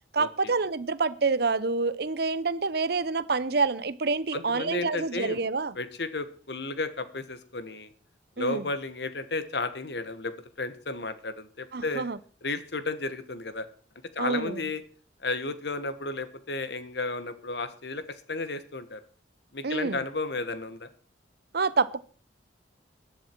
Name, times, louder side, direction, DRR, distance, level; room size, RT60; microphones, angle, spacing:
voice 1, 0.1-5.7 8.4-8.7 11.7-12.2 14.2-14.6 19.6-20.0 21.5-22.0, right 4 dB, 55° right, 0.7 m, -27 dB
voice 2, 4.3-5.4 5.7-7.9 8.4-12.1 12.4-13.7 14.1-14.8 15.2-19.0 19.5-20.9, left 3 dB, 60° left, 1.3 m, -33 dB
17.0 x 11.0 x 4.5 m
head